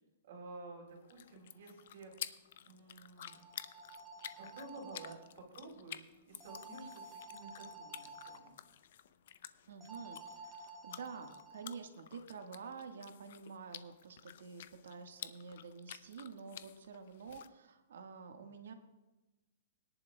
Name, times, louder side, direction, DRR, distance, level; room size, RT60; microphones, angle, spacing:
voice 1, 0.2-3.4 4.4-8.5, right 3 dB, 55° right, -1 dB, 4.6 m, -52 dB
sound 1, 0.9-17.5, left 10 dB, 55° left, 0.5 m, -52 dB
sound 2, 3.2-5.1 6.4-8.4 9.8-11.8, right 2 dB, 5° right, 1.3 m, -52 dB
voice 2, 9.7-18.7, right 5 dB, 85° right, 5 dB, 1.4 m, -49 dB
21.5 x 10.5 x 2.2 m, 1.1 s
hypercardioid pair, 170°, 0 cm